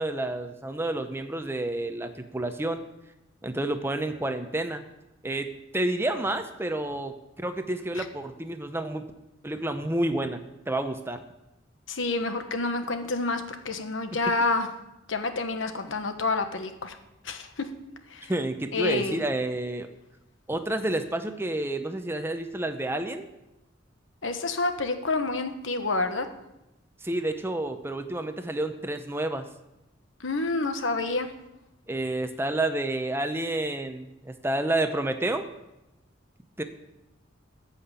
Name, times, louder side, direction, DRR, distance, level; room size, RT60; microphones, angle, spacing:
voice 1, 0.0-2.8 3.4-4.8 5.2-9.0 9.4-11.2 18.3-19.9 20.5-23.3 27.0-29.5 31.9-35.5 36.6-36.7, right 1 dB, 10° right, 8 dB, 0.7 m, -29 dB
voice 2, 11.9-14.7 15.1-17.0 17.2-17.7 18.1-18.3 18.7-19.2 24.2-26.3 30.2-31.3, left 3 dB, 75° left, 7 dB, 1.2 m, -28 dB
14.0 x 5.7 x 8.1 m, 0.93 s
head